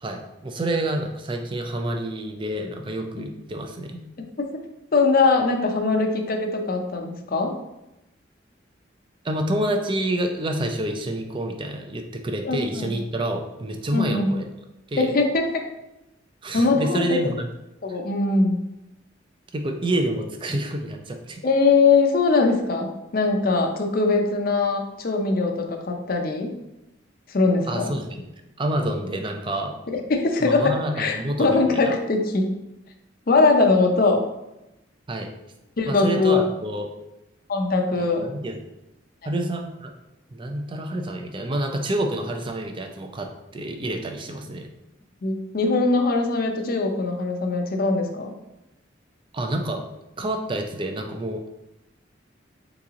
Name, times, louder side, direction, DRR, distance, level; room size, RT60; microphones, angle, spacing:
voice 1, 0.0-4.1 9.2-14.5 14.9-15.1 16.4-17.5 19.5-21.4 27.7-28.2 28.6-29.8 30.4-32.0 35.1-35.3 35.9-36.9 38.0-38.6 39.2-39.9 40.3-44.7 49.3-49.8 50.2-51.4, right 1 dB, 25° right, 4 dB, 0.4 m, -28 dB
voice 2, 4.9-7.5 12.4-12.9 13.9-14.3 15.0-15.6 16.5-17.2 17.8-18.6 21.4-26.5 27.3-27.9 29.9-30.7 31.0-32.5 33.3-34.3 35.8-36.4 37.5-38.3 45.2-48.3, left 3 dB, 50° left, 3 dB, 0.6 m, -21 dB
3.9 x 3.0 x 3.6 m, 0.92 s
head